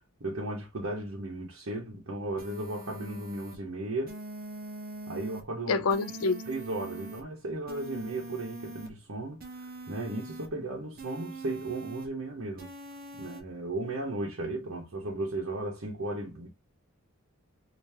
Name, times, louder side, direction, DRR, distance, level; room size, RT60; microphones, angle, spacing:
voice 1, 0.2-4.2 5.1-5.8 6.4-9.4 9.9-12.7 13.2-16.5, right 2 dB, 75° right, 1.0 m, -35 dB
sound 1, 2.4-3.6 4.1-5.4 5.9-7.2 7.7-8.9 9.4-10.5 11.0-12.1 12.6-13.4, right 2 dB, 45° right, 0.8 m, -43 dB
voice 2, 5.7-6.4, left 4 dB, 85° left, 0.4 m, -27 dB
3.4 x 2.8 x 2.7 m
head